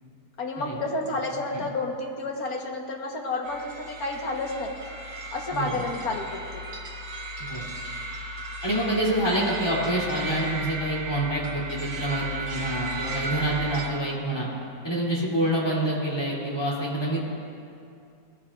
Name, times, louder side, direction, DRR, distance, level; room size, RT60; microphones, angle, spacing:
voice 1, 0.4-4.8 5.3-6.6, left 2 dB, 55° left, 1 dB, 1.6 m, -30 dB
sound 1, 3.4-13.9, right 1 dB, 80° right, 2.4 m, -35 dB
voice 2, 8.6-14.5 14.8-17.3, right 1 dB, 10° left, -7 dB, 2.9 m, -27 dB
19.0 x 14.0 x 2.5 m, 2.5 s
omnidirectional pair, 2.0 m